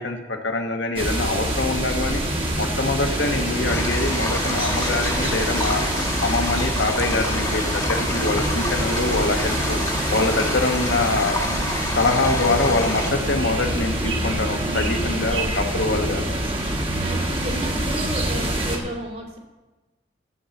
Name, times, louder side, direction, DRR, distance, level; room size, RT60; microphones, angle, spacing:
voice 1, 0.0-2.2 2.6-5.8 6.2-9.8 10.1-11.4 12.0-16.2, left 3 dB, 75° left, 3 dB, 1.3 m, -24 dB
sound 1, 1.0-18.8, right 1 dB, 30° right, 1.5 m, -25 dB
sound 2, 3.7-13.1, left 2 dB, 20° left, 1.4 m, -29 dB
voice 2, 15.3-15.8 17.0-19.4, right 1 dB, 55° right, -5 dB, 2.7 m, -33 dB
12.5 x 5.7 x 7.7 m, 1.2 s
head